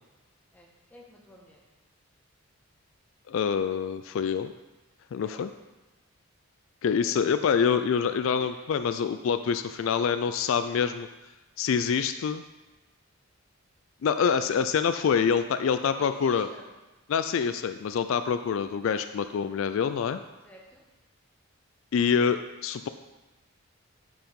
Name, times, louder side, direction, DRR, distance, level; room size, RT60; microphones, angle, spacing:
voice 1, 0.5-1.6 5.1-5.4 7.0-7.4 8.3-8.5 15.1-15.3 15.7-16.7 20.4-20.8, left 1 dB, 5° left, -3 dB, 1.2 m, -50 dB
voice 2, 3.3-4.5 5.1-5.5 6.8-11.1 11.6-12.4 14.0-16.5 17.1-20.2 21.9-22.9, left 6 dB, 65° left, 10 dB, 0.3 m, -26 dB
9.1 x 4.8 x 5.2 m, 1.1 s
head